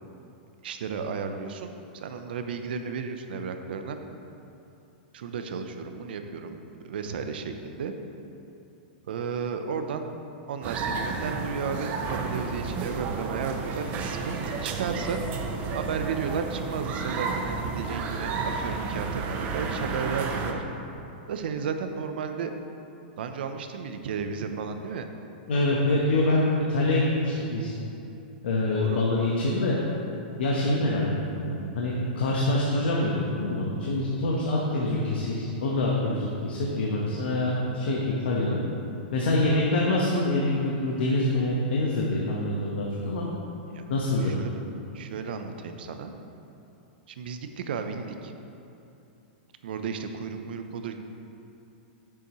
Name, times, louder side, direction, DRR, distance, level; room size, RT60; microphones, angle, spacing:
voice 1, 0.6-1.7 2.0-4.0 5.1-6.6 6.8-7.9 9.1-10.1 10.5-15.2 15.7-20.6 21.3-22.5 23.2-25.1 28.7-29.0 39.2-39.6 43.7-43.8 44.2-44.6 44.9-46.1 47.1-48.3 49.6-51.0, right 6 dB, 70° right, 7 dB, 0.7 m, -33 dB
sound 1, 10.6-20.5, right 4 dB, 30° right, 0.7 m, -31 dB
voice 2, 25.5-27.7 28.4-29.8 30.4-31.0 31.3-38.6 39.1-43.3 43.9-44.3, left 2 dB, 80° left, -4 dB, 1.1 m, -25 dB
9.9 x 7.0 x 3.1 m, 2.8 s
hypercardioid pair, 150°, 5 cm